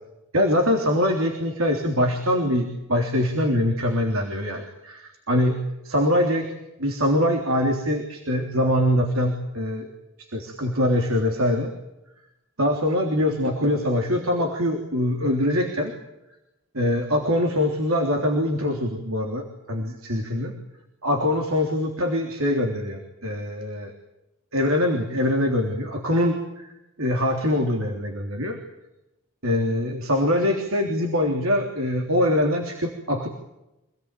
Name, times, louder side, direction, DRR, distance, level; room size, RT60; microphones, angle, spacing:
voice 1, 0.3-6.5 6.8-9.9 10.3-11.7 12.6-15.9 16.7-20.5 21.0-23.9 24.5-26.7 27.0-28.6 29.4-33.3, left 1 dB, 75° right, 3 dB, 3.5 m, -23 dB
26.5 x 18.5 x 9.2 m, 0.91 s
head